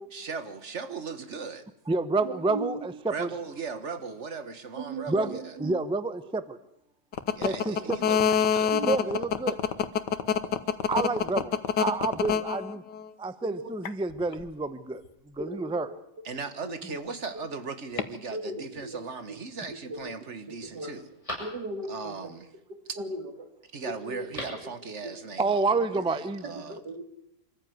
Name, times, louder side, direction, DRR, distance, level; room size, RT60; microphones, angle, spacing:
voice 1, 0.1-1.7 3.1-5.6 7.4-8.8 16.2-21.1 21.9-22.5 22.9-23.0 23.7-26.8, right 4 dB, 45° right, 10 dB, 1.8 m, -38 dB
voice 2, 1.9-3.3 5.1-6.6 7.4-8.0 8.8-9.6 10.2-10.3 10.9-12.8 13.2-15.0 15.3-15.9 25.4-26.8, right 3 dB, 5° right, 13 dB, 0.5 m, -29 dB
voice 3, 2.5-2.8 4.8-5.0 5.6-5.7 8.7-8.9 13.5-13.7 15.4-15.9 16.6-16.7 18.3-19.0 19.9-20.0 20.7-20.9 21.4-22.3 23.0-23.2 23.8-24.2 26.7-27.0, right 1 dB, 75° right, 7 dB, 3.0 m, -36 dB
sound 1, 7.1-13.1 13.9-14.4 18.0-18.1, left 8 dB, 75° left, 1.8 m, -25 dB
Telephone, 19.0-19.5 20.1-20.2 20.6-22.1 24.1-24.7 25.0-25.1, left 1 dB, 20° left, 7.2 m, -42 dB
25.0 x 14.5 x 9.4 m, 0.77 s
omnidirectional pair, 1.8 m